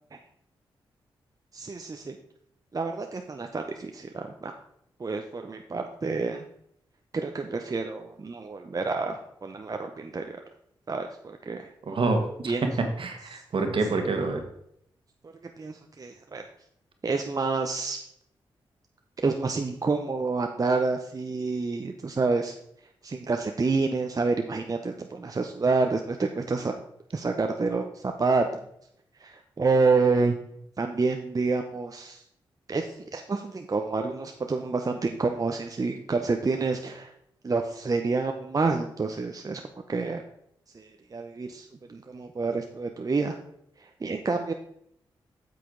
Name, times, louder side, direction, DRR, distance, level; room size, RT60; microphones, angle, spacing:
voice 1, 1.5-2.2 2.7-4.5 5.0-6.5 7.1-10.4 10.9-11.7 12.5-12.7 13.9-14.0 15.6-16.4 17.0-18.0 19.2-22.5 23.0-26.8 27.1-28.7 29.2-30.4 30.8-32.2 32.7-37.1 37.4-39.6 39.9-40.2 40.7-43.4 43.8-44.5, right 4 dB, 40° right, 4 dB, 0.7 m, -28 dB
voice 2, 11.9-12.5 13.0-14.4, right 3 dB, 60° right, 4 dB, 1.5 m, -27 dB
8.2 x 6.8 x 3.9 m, 0.73 s
supercardioid pair, 50°, 10 cm